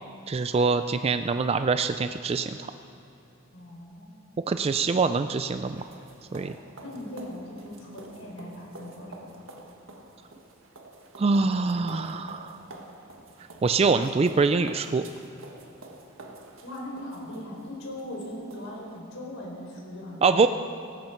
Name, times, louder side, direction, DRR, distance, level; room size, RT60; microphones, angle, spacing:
voice 1, 0.3-2.6 4.5-5.8 6.3-6.5 11.2-12.6 13.6-15.1 20.2-20.5, right 4 dB, 30° right, 9 dB, 0.3 m, -24 dB
voice 2, 3.5-4.2 6.8-9.4 16.6-20.5, left 1 dB, 80° left, -2 dB, 4.3 m, -39 dB
sound 1, 5.3-19.0, right 2 dB, 80° right, 1.6 m, -48 dB
17.5 x 14.5 x 4.5 m, 2.9 s
head